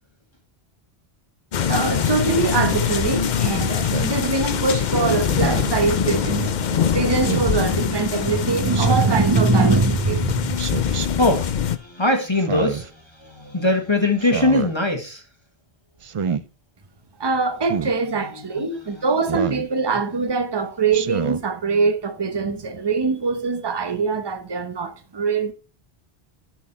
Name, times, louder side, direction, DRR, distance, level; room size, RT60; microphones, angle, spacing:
sound 1, 1.5-11.8, left 8 dB, 50° left, 0.7 m, -23 dB
voice 1, 1.7-10.6 17.2-25.5, right 4 dB, 25° right, 0.9 m, -22 dB
Speech synthesizer, 3.8-4.2 5.3-5.8 7.2-7.5 8.7-9.2 10.6-11.1 12.3-12.9 14.2-14.7 16.0-16.4 17.6-17.9 19.3-19.7 20.9-21.4, right 7 dB, 50° right, 0.4 m, -28 dB
voice 2, 11.2-15.2 18.6-18.7, left 2 dB, 25° left, 1.4 m, -21 dB
11.0 x 6.3 x 4.2 m
omnidirectional pair, 1.1 m